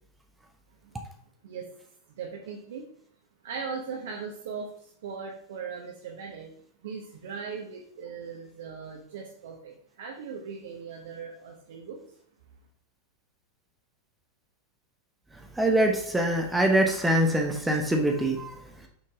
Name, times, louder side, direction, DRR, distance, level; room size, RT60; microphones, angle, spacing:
voice 1, 2.2-2.8 3.4-6.5 6.8-12.0, right 5 dB, 60° right, 0 dB, 1.1 m, -39 dB
voice 2, 15.6-18.6, right 1 dB, 5° right, 2 dB, 0.9 m, -24 dB
6.4 x 5.9 x 3.6 m, 0.63 s
figure-of-eight pair, 90°, 0 cm